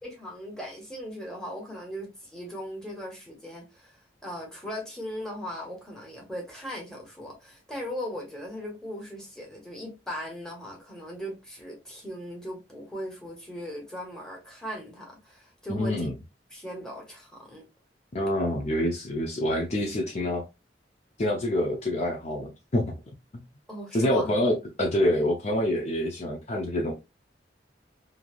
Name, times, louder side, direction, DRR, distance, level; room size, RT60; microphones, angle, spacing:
voice 1, 0.0-16.1 16.5-17.6 23.7-24.3, equal, 5° left, 1.1 m, -38 dB
voice 2, 15.7-16.1 18.1-20.4 21.2-22.9 23.9-26.9, left 1 dB, 40° left, 0.5 m, -26 dB
3.1 x 2.6 x 2.4 m
head